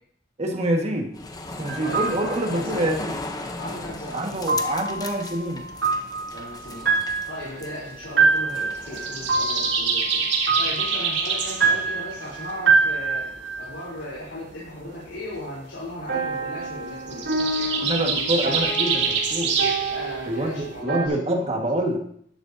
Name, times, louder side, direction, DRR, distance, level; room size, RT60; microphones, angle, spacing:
voice 1, 0.4-1.1 1.6-3.1 4.1-5.7 17.7-19.5 20.3-22.0, right 1 dB, 35° right, 2 dB, 1.7 m, -26 dB
sound 1, 1.1-9.3, left 2 dB, 20° left, 0.8 m, -37 dB
sound 2, 1.7-2.4 4.5-13.7 16.1-21.1, right 4 dB, 85° right, 3.0 m, -26 dB
voice 2, 1.8-2.9 3.5-4.6 6.3-6.9 7.3-10.3 10.6-13.3 13.6-17.7 19.9-21.1, left 1 dB, 80° left, -6 dB, 3.5 m, -37 dB
sound 3, 5.0-20.8, right 5 dB, 70° right, 2.3 m, -28 dB
12.0 x 11.5 x 2.8 m, 0.65 s
head